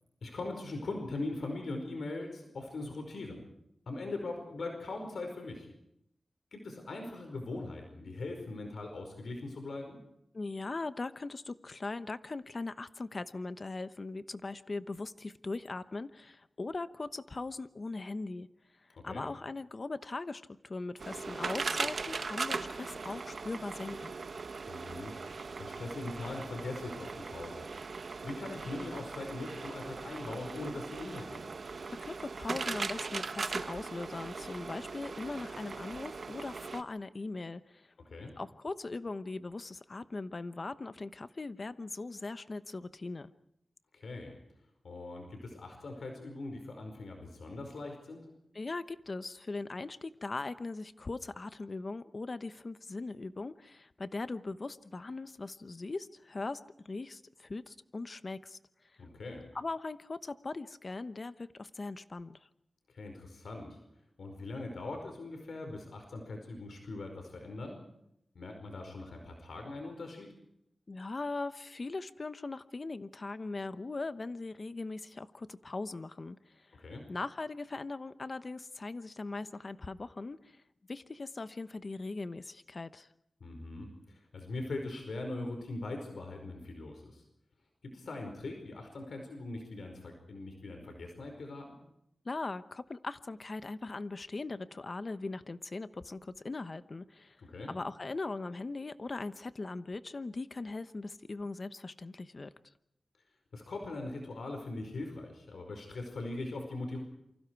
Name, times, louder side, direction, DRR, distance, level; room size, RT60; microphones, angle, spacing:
voice 1, 0.2-3.4 3.9-5.7 6.5-10.0 19.1-19.2 24.7-27.6 28.2-31.5 38.0-38.3 43.9-44.3 44.8-48.3 59.0-59.4 62.9-63.8 64.2-67.8 68.3-70.3 76.7-77.0 83.4-87.2 87.8-91.8 97.5-97.7 103.5-107.0, left 2 dB, 85° left, 4 dB, 5.1 m, -41 dB
voice 2, 10.3-18.5 19.0-24.1 31.9-37.9 38.4-43.3 48.5-58.6 59.5-62.4 70.9-76.4 77.1-80.6 80.9-83.1 92.2-97.4 97.7-102.5, left 3 dB, 45° left, 12 dB, 1.0 m, -40 dB
sound 1, 21.0-36.8, right 4 dB, 65° right, 1.1 m, -39 dB
28.5 x 25.0 x 4.8 m, 0.79 s
wide cardioid pair, 90°, 0 cm